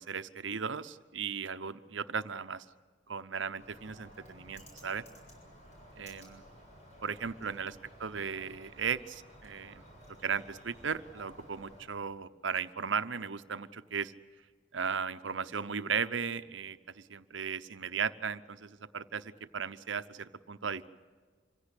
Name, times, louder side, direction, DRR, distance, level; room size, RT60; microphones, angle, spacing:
voice 1, 0.0-2.7 3.1-5.0 6.0-6.4 7.0-9.8 10.2-14.1 14.7-20.9, right 6 dB, 80° right, 12 dB, 0.9 m, -36 dB
Bird, 3.6-11.8, equal, 40° left, 7.1 m, -54 dB
26.5 x 16.5 x 8.3 m, 1.5 s
head